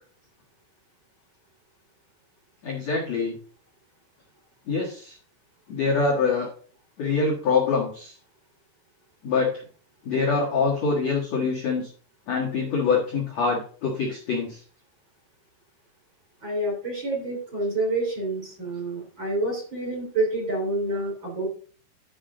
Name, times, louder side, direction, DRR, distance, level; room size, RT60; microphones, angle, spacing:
voice 1, 2.6-3.3 4.7-5.1 5.7-6.5 7.0-8.1 9.2-9.5 10.0-11.9 12.3-14.6, left 4 dB, 80° left, -3 dB, 1.5 m, -24 dB
voice 2, 16.4-21.5, right 2 dB, 30° right, -2 dB, 3.0 m, -28 dB
12.5 x 5.1 x 3.8 m, 0.43 s
omnidirectional pair, 5.7 m